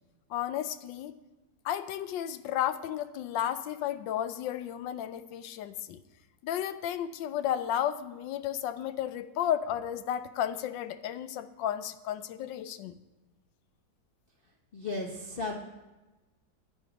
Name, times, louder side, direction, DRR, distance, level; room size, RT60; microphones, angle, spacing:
voice 1, 0.3-1.1 1.6-6.0 6.4-13.0, left 10 dB, 80° left, 13 dB, 1.3 m, -33 dB
voice 2, 14.7-15.6, left 2 dB, 40° left, -1 dB, 0.9 m, -35 dB
11.0 x 9.1 x 5.2 m, 1.1 s
omnidirectional pair, 2.0 m